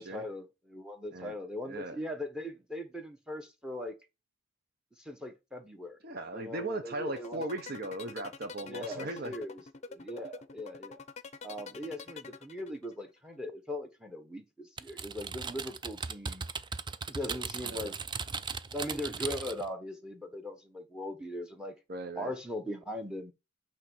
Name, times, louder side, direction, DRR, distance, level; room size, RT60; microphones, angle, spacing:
voice 1, 0.0-4.0 5.0-6.0 6.3-7.4 8.6-9.6 9.9-11.0 11.4-16.4 17.1-18.0 18.7-21.8 22.2-23.3, left 1 dB, 5° right, 1.2 m, -40 dB
voice 2, 1.6-2.0 6.0-9.3 17.6-17.9 21.9-22.3, right 2 dB, 50° right, 1.0 m, -38 dB
sound 1, 7.1-13.0, left 5 dB, 35° left, 0.6 m, -46 dB
Typing, 14.8-19.7, right 5 dB, 25° right, 0.4 m, -38 dB
8.9 x 3.1 x 6.2 m
head